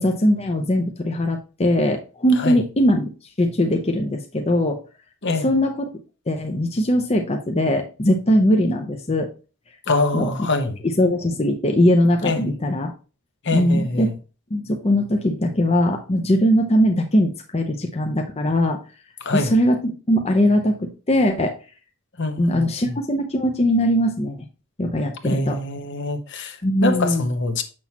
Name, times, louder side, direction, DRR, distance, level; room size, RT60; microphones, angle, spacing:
voice 1, 0.0-3.1 3.4-4.8 5.4-5.9 6.3-9.3 10.1-10.3 10.8-12.9 13.5-14.1 14.5-18.8 19.3-21.5 22.4-24.4 24.8-25.6 26.6-27.3, equal, 30° left, 0.7 m, -20 dB
voice 2, 9.9-10.8 12.2-12.4 13.4-14.1 19.2-19.5 22.2-23.0 25.2-27.6, left 2 dB, 55° left, 1.0 m, -24 dB
7.2 x 6.2 x 2.9 m
head